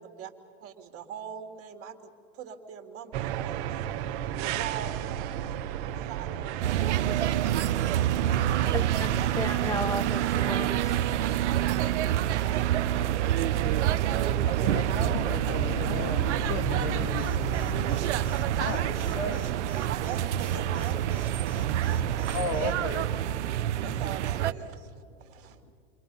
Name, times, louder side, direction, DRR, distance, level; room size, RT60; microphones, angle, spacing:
voice 1, 0.6-3.7 4.3-5.3 6.0-7.0 9.1-9.9 10.2-10.4 12.3-12.7 19.8-21.6 23.5-25.7, right 8 dB, 40° right, 6 dB, 2.5 m, -42 dB
sound 1, 3.1-22.8, right 10 dB, 60° right, 1.3 m, -35 dB
sound 2, 6.6-24.5, right 11 dB, 85° right, 0.9 m, -27 dB
voice 2, 8.7-11.0, left 2 dB, 10° left, 13 dB, 0.9 m, -34 dB
voice 3, 14.4-18.2 18.5-19.7 21.7-23.5 25.1-25.7, left 3 dB, 60° left, 8 dB, 2.3 m, -35 dB
Alarm, 17.2-22.7, left 5 dB, 80° left, 2.2 m, -53 dB
29.0 x 23.0 x 5.6 m, 2.4 s
hypercardioid pair, 115°, 34 cm